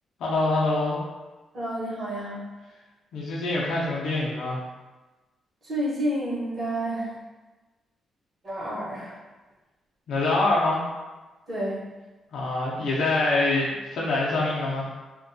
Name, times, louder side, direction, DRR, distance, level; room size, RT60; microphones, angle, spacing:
voice 1, 0.2-1.0 3.1-4.6 10.1-10.8 12.3-14.9, left 2 dB, 70° left, -5 dB, 0.5 m, -25 dB
voice 2, 1.5-2.5 5.6-7.2 8.4-9.2 11.5-11.9, right 1 dB, 40° right, -9 dB, 0.9 m, -30 dB
2.5 x 2.2 x 2.5 m, 1.2 s
cardioid pair, 165°, 0 cm